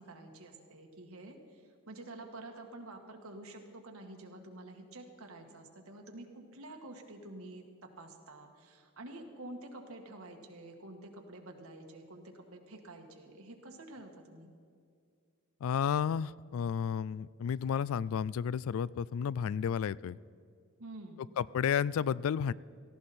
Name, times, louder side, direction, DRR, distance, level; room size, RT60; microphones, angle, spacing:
voice 1, 0.0-14.5 20.8-21.2, right 2 dB, 85° right, 3 dB, 1.7 m, -49 dB
voice 2, 15.6-20.2 21.4-22.5, left 7 dB, 75° left, 21 dB, 0.3 m, -32 dB
17.5 x 15.0 x 4.3 m, 2.2 s
head